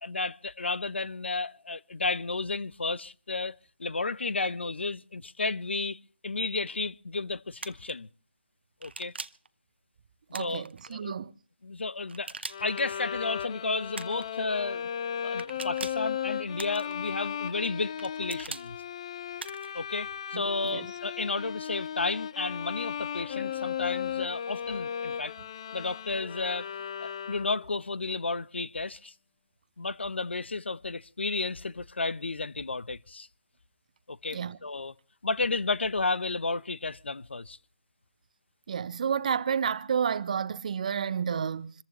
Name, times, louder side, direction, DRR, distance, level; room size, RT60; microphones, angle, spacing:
voice 1, 0.0-3.5 3.8-6.0 6.2-8.1 8.8-9.1 10.3-11.1 11.6-14.9 15.2-18.8 19.7-25.3 25.7-26.7 27.0-29.1 29.8-33.3 34.1-34.9 35.2-37.6, left 3 dB, 85° left, 0.8 m, -32 dB
sound 1, 7.6-7.9 8.8-9.5 10.3-10.9 12.1-12.8 13.9-14.3 15.4-16.1 16.6-17.1 18.0-18.7 19.4-19.8, right 4 dB, 75° right, 1.0 m, -41 dB
voice 2, 10.3-11.3 20.3-20.4 20.7-20.9 34.3-34.6 38.7-41.7, right 7 dB, 40° right, 0.7 m, -30 dB
Bowed string instrument, 12.5-27.8, left 8 dB, 30° left, 0.7 m, -36 dB
27.0 x 14.5 x 3.0 m
figure-of-eight pair, 160°, 6 cm